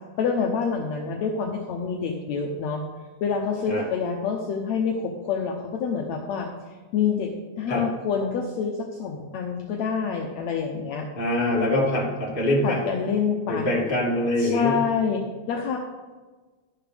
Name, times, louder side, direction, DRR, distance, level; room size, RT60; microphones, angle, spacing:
voice 1, 0.2-2.8 3.2-6.5 6.9-11.1 12.6-13.7 14.4-15.8, left 6 dB, 70° left, 1 dB, 1.9 m, -27 dB
voice 2, 11.2-12.8 13.5-14.8, left 1 dB, 15° left, -5 dB, 2.5 m, -24 dB
12.5 x 11.0 x 3.4 m, 1.3 s
omnidirectional pair, 3.5 m